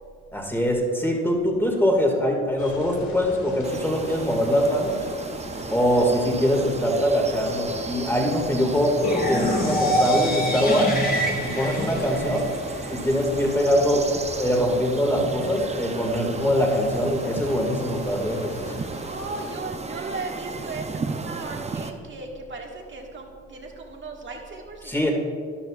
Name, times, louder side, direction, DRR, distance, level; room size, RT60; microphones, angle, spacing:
voice 1, 0.3-5.0 5.7-11.0 11.4-12.5 12.9-14.1 14.3-18.7 24.8-25.1, equal, 5° left, 0 dB, 2.0 m, -23 dB
sound 1, 2.6-19.6, left 2 dB, 70° left, 2.2 m, -42 dB
sound 2, 3.6-21.9, right 4 dB, 20° right, 0.6 m, -35 dB
sound 3, 9.0-13.0, equal, 30° left, 2.0 m, -25 dB
voice 2, 18.9-25.0, right 3 dB, 40° right, 0 dB, 1.7 m, -37 dB
13.0 x 10.5 x 2.4 m, 2.2 s
cardioid pair, 90°, 30 cm